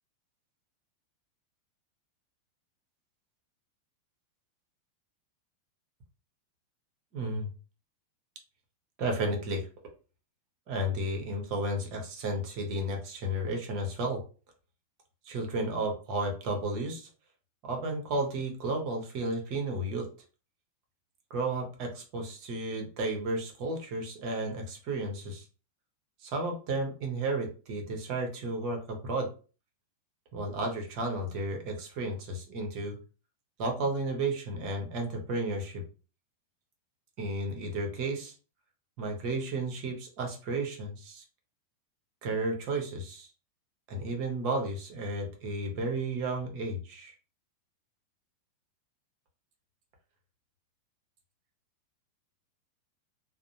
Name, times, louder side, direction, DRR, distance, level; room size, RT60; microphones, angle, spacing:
voice 1, 7.1-7.5 9.0-9.7 10.7-14.2 15.2-17.1 17.6-20.1 21.3-25.4 26.2-29.3 30.3-33.0 33.6-35.8 37.2-38.3 39.0-41.2 42.2-43.3 43.9-47.1, right 2 dB, 45° right, 3 dB, 0.8 m, -33 dB
2.5 x 2.0 x 2.8 m, 0.36 s
figure-of-eight pair, 90°, 0 cm